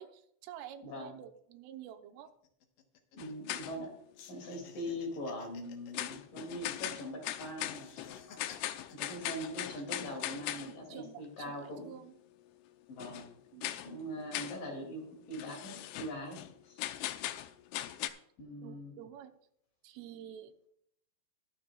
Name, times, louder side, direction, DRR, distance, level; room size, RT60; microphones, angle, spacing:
voice 1, 0.0-2.3 10.9-12.2 13.5-13.8 18.6-19.3 19.8-20.7, right 10 dB, 90° right, 6 dB, 3.5 m, -49 dB
voice 2, 0.8-1.2 3.1-3.9 4.3-8.4 8.9-12.0 12.9-13.3 13.8-16.8 18.4-18.9, equal, 50° left, 1 dB, 3.7 m, -42 dB
sound 1, 1.4-1.5 1.7-1.9 2.3-3.9 4.1-7.2 7.6-10.7 11.2-11.8, left 8 dB, 70° left, 2.1 m, -56 dB
sound 2, 3.2-3.9 4.4-4.6 5.9-10.8 13.0-13.3 13.6-13.9 14.3-14.6 15.3-16.5 16.8-18.1, left 13 dB, 85° left, 2.3 m, -39 dB
22.0 x 7.5 x 2.4 m, 0.69 s
omnidirectional pair, 5.6 m